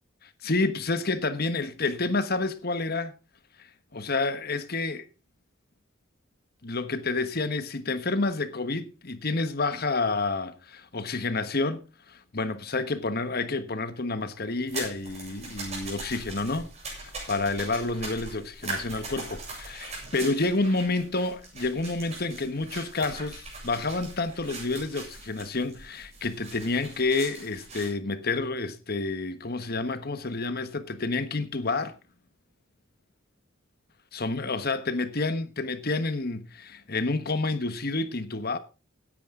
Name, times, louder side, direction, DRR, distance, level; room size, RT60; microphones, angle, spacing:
voice 1, 0.2-3.1 3.9-5.0 6.6-16.7 17.0-31.9 34.1-38.6, left 3 dB, 45° left, 1.3 m, -29 dB
sound 1, 14.7-27.9, right 3 dB, 30° right, 7.7 m, -41 dB
17.0 x 10.0 x 3.8 m
head